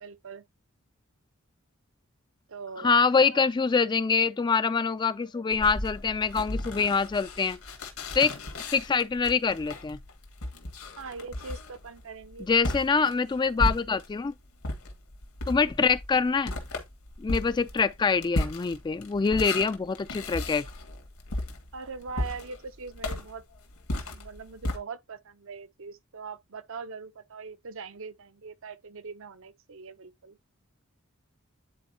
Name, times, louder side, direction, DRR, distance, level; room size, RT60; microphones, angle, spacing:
voice 1, 0.0-0.4 2.5-3.0 11.0-12.5 12.8-12.9 21.7-23.4 23.9-30.4, right 4 dB, 65° right, 0.7 m, -41 dB
voice 2, 2.8-7.6 8.1-8.4 8.7-10.0 12.4-14.3 15.5-16.5 17.2-20.7, left 5 dB, 20° left, 0.3 m, -25 dB
sound 1, 5.5-14.2 14.6-24.8, left 1 dB, 85° left, 2.0 m, -35 dB
9.9 x 4.3 x 2.8 m
head